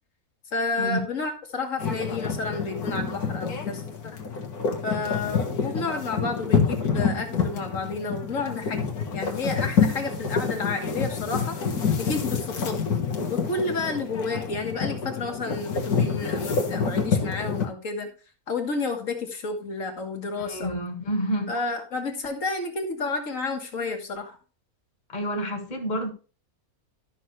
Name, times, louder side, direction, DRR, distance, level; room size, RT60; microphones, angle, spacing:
voice 1, 0.5-4.2 4.8-11.6 12.0-12.8 13.3-18.1 18.5-20.7 21.5-24.4, left 3 dB, 60° left, 1.9 m, -31 dB
sound 1, 1.8-17.7, left 5 dB, 90° left, 1.8 m, -27 dB
voice 2, 20.4-21.5 25.1-26.1, equal, 30° left, 1.7 m, -29 dB
13.0 x 6.0 x 3.2 m
omnidirectional pair, 1.6 m